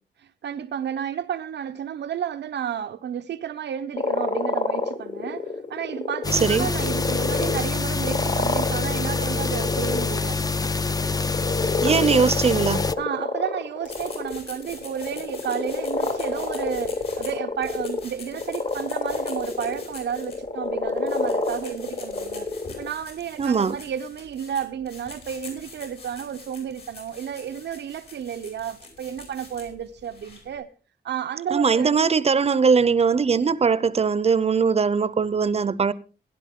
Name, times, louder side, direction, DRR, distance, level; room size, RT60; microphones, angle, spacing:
voice 1, 0.2-10.4 13.0-22.5 22.8-30.7 31.0-31.9, right 9 dB, 90° right, 0.8 m, -32 dB
sound 1, 4.0-22.9, left 3 dB, 50° left, 1.5 m, -29 dB
sound 2, 6.2-12.9, left 4 dB, 20° left, 0.5 m, -26 dB
voice 2, 6.3-6.7 11.8-12.8 23.4-23.7 31.5-35.9, right 5 dB, 35° right, 0.6 m, -20 dB
sound 3, 13.8-30.6, left 4 dB, 65° left, 5.5 m, -45 dB
17.0 x 11.0 x 3.6 m
wide cardioid pair, 125°, 18 cm